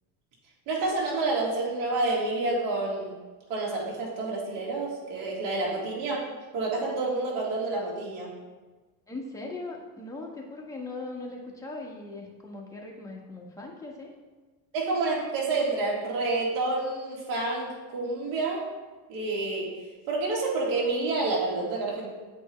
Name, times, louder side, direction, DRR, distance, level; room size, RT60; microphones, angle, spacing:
voice 1, 0.7-3.1 3.5-6.3 6.5-8.3 14.7-18.7 19.1-19.7 20.1-22.1, right 3 dB, 75° right, -2 dB, 2.0 m, -28 dB
voice 2, 9.1-14.1, left 2 dB, 5° left, -2 dB, 1.2 m, -39 dB
7.8 x 4.5 x 3.2 m, 1.3 s
supercardioid pair, 110°, 44 cm